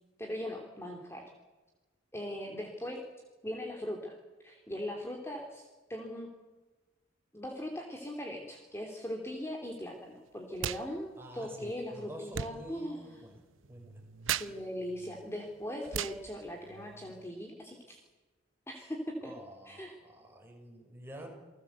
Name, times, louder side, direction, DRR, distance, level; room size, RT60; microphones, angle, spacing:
voice 1, 0.2-1.2 2.1-3.0 3.4-6.3 7.3-13.2 14.4-18.0 18.7-19.3 19.6-20.0, equal, 15° left, 1 dB, 3.0 m, -40 dB
sound 1, 10.5-10.9 11.1-17.3, right 8 dB, 80° right, 0.9 m, -40 dB
voice 2, 11.2-13.4 13.7-13.9 19.2-21.3, right 1 dB, 10° right, 2 dB, 5.7 m, -48 dB
29.0 x 19.0 x 8.2 m, 1.2 s
head